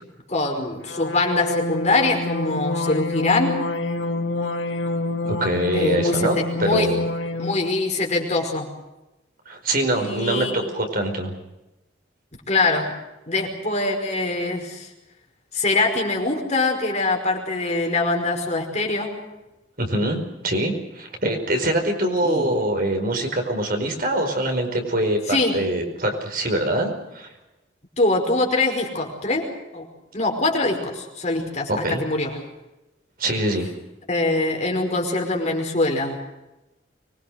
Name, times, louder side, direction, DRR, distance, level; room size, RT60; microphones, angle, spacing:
voice 1, 0.3-3.6 5.7-6.9 7.4-8.7 9.9-10.7 12.5-12.9 13.3-14.9 15.5-19.1 22.2-22.6 25.3-25.6 28.0-29.5 29.7-29.9 30.1-32.3 34.1-36.2, left 2 dB, 35° left, 2 dB, 5.2 m, -23 dB
sound 1, 0.9-7.7, left 2 dB, 85° left, 2.3 m, -27 dB
voice 2, 5.2-7.0 9.4-11.3 19.8-27.3 31.7-32.0 33.2-33.7, right 1 dB, 50° right, 4 dB, 4.9 m, -24 dB
25.0 x 22.5 x 6.6 m, 0.99 s
head